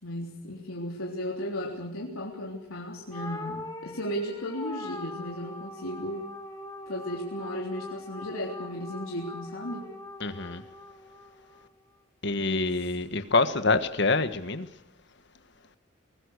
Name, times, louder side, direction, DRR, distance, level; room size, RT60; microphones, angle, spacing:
voice 1, 0.0-6.3 6.9-9.9 12.4-13.1, equal, 90° left, 3.6 m, -35 dB
sound 1, 3.1-11.7, left 1 dB, 15° left, 5.0 m, -42 dB
voice 2, 10.2-10.6 12.2-14.7, left 3 dB, 55° left, 1.4 m, -26 dB
24.0 x 20.0 x 6.6 m
head